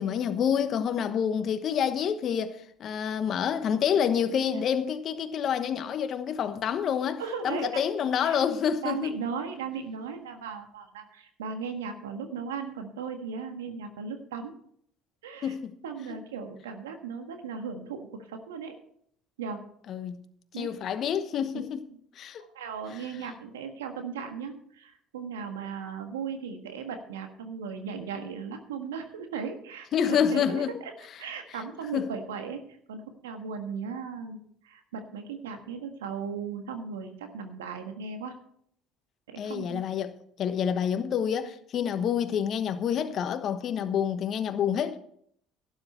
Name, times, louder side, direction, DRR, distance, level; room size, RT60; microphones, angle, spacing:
voice 1, 0.0-9.1 15.4-15.7 19.9-20.2 20.6-21.9 22.2-22.5 29.9-30.7 31.9-32.1 39.4-40.1 40.4-45.0, left 8 dB, 50° left, 1.1 m, -28 dB
voice 2, 7.2-7.8 8.2-8.4 8.8-14.5 15.2-15.5 15.8-18.7 19.4-19.6 20.5-20.7 21.5-21.6 22.5-30.9 31.2-32.6 32.9-34.4 34.6-38.4 39.3-39.8, right 6 dB, 85° right, 1.5 m, -37 dB
12.0 x 10.5 x 4.3 m
hypercardioid pair, 65°, 0 cm